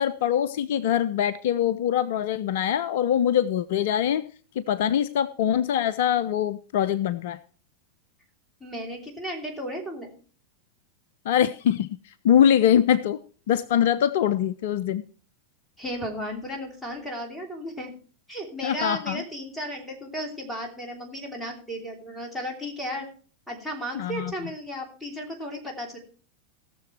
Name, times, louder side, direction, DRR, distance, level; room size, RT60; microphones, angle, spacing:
voice 1, 0.0-4.2 4.6-7.4 11.3-11.9 12.2-13.2 13.5-15.0 18.6-19.2 23.9-24.3, left 9 dB, 55° left, 16 dB, 0.4 m, -23 dB
voice 2, 8.6-10.1 15.8-17.9 18.3-23.1 23.5-26.0, equal, 5° left, 1 dB, 3.0 m, -34 dB
17.0 x 6.8 x 4.5 m, 0.41 s
figure-of-eight pair, 90°, 0 cm